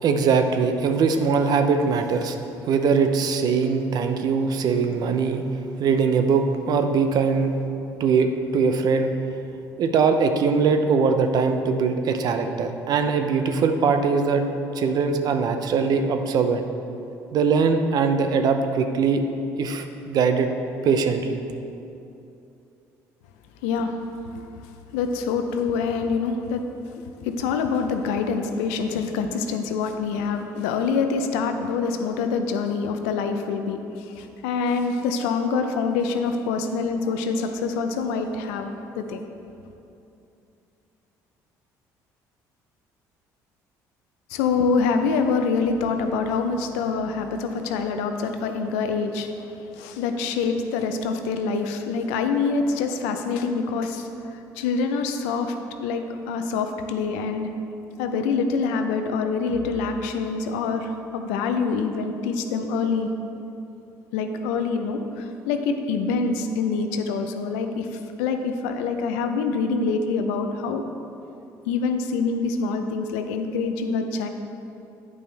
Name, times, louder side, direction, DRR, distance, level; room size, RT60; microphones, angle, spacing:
voice 1, 0.0-2.4 2.6-5.4 5.8-7.5 8.0-9.1 9.8-14.4 14.7-16.7 17.3-19.2 19.6-20.5 20.8-21.4, right 5 dB, 60° right, 7 dB, 0.6 m, -21 dB
voice 2, 23.6-24.0 24.3-24.4 24.9-26.6 26.9-39.2 44.3-55.6 55.8-57.5 58.0-63.1 64.1-70.8 71.7-74.3, left 4 dB, 90° left, 6 dB, 0.5 m, -25 dB
9.2 x 5.3 x 3.4 m, 2.8 s
supercardioid pair, 80°, 8 cm